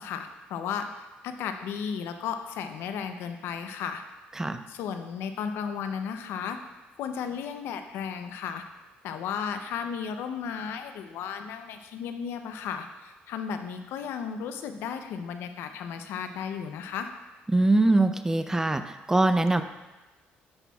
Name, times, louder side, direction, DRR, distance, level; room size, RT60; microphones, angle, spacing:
voice 1, 0.0-4.0 4.7-6.6 7.0-8.6 9.0-17.1, left 7 dB, 80° left, 7 dB, 0.6 m, -34 dB
voice 2, 17.5-19.6, right 2 dB, 15° right, 9 dB, 0.5 m, -23 dB
10.5 x 5.9 x 2.3 m, 1.1 s
cardioid pair, 90°, 4 cm